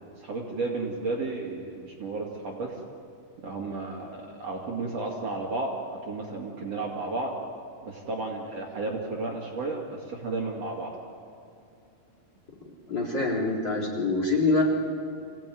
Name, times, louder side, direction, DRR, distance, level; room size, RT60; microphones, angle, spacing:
voice 1, 0.2-2.7 3.4-5.7 6.1-7.3 7.8-10.9, right 3 dB, 45° right, -2 dB, 3.0 m, -33 dB
voice 2, 12.9-14.6, left 3 dB, 30° left, -2 dB, 3.5 m, -25 dB
26.5 x 17.5 x 9.3 m, 2.6 s
omnidirectional pair, 4.3 m